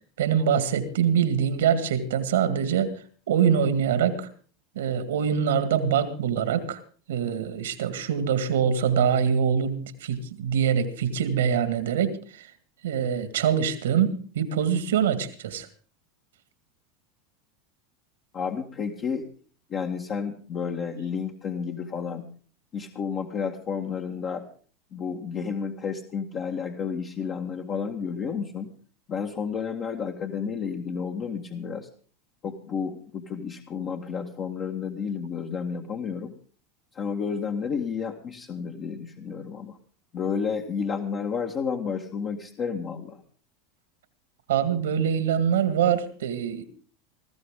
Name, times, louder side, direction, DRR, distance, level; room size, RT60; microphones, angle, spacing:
voice 1, 0.2-2.9 3.3-4.3 4.8-6.8 7.1-12.5 12.8-15.7 44.5-46.6, right 8 dB, 80° right, 11 dB, 2.0 m, -24 dB
voice 2, 18.3-19.3 19.7-22.3 22.7-24.5 24.9-28.7 29.1-31.9 32.4-36.3 36.9-39.8 40.1-43.2, left 6 dB, 40° left, 1 dB, 1.9 m, -31 dB
20.0 x 14.5 x 3.8 m, 0.42 s
hypercardioid pair, 90°, 0 cm